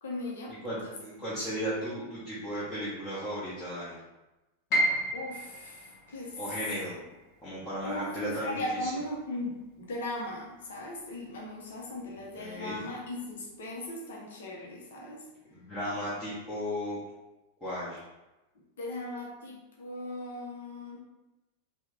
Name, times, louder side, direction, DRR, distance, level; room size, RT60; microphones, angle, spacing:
voice 1, 0.0-0.9 5.1-6.4 7.8-15.2 18.8-21.0, left 1 dB, 60° left, -2 dB, 0.8 m, -38 dB
voice 2, 0.6-4.0 6.4-7.0 7.4-8.9 12.4-12.8 15.5-17.0 17.6-18.0, equal, 15° left, -11 dB, 1.0 m, -35 dB
Piano, 4.7-10.6 11.0-12.1 12.5-12.6 13.3-13.7, equal, 40° left, 1.1 m, -35 dB
3.5 x 2.2 x 3.2 m, 1.0 s
figure-of-eight pair, 90°, 0 cm